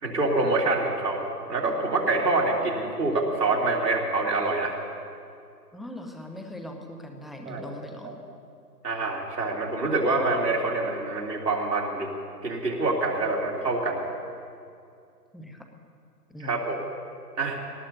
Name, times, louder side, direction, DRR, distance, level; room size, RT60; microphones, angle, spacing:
voice 1, 0.0-1.2 1.5-4.7 7.4-7.7 8.0-8.2 8.8-12.1 12.4-14.0 16.4-16.8 17.4-17.6, right 2 dB, 75° right, -2 dB, 3.1 m, -26 dB
voice 2, 5.7-8.2 15.3-15.6 16.3-16.6, equal, ahead, 4 dB, 0.4 m, -40 dB
20.5 x 18.5 x 2.8 m, 2.4 s
figure-of-eight pair, 155°, 49 cm